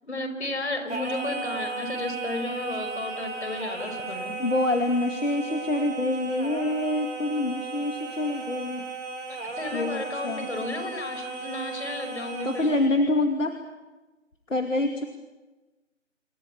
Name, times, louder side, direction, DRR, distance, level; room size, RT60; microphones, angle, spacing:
voice 1, 0.0-4.4 9.4-12.7, left 2 dB, 60° left, 7 dB, 5.4 m, -33 dB
Singing, 0.9-13.0, right 3 dB, 60° right, 5.2 m, -35 dB
voice 2, 4.4-8.9 9.7-10.5 12.4-13.5 14.5-15.0, left 2 dB, 75° left, 5 dB, 2.6 m, -26 dB
27.5 x 23.0 x 7.2 m, 1.2 s
figure-of-eight pair, 170°, 38 cm